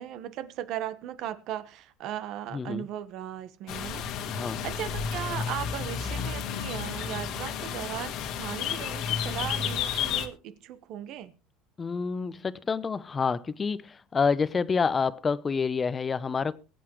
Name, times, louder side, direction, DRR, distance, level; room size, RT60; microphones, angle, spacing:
voice 1, 0.0-4.0 4.6-11.3, right 11 dB, 60° right, 1.2 m, -37 dB
voice 2, 2.5-2.8 4.3-4.6 11.8-16.5, left 5 dB, 25° left, 0.7 m, -28 dB
sound 1, 3.7-10.3, left 7 dB, 60° left, 1.7 m, -32 dB
22.0 x 8.2 x 3.1 m
cardioid pair, 130°, 0 cm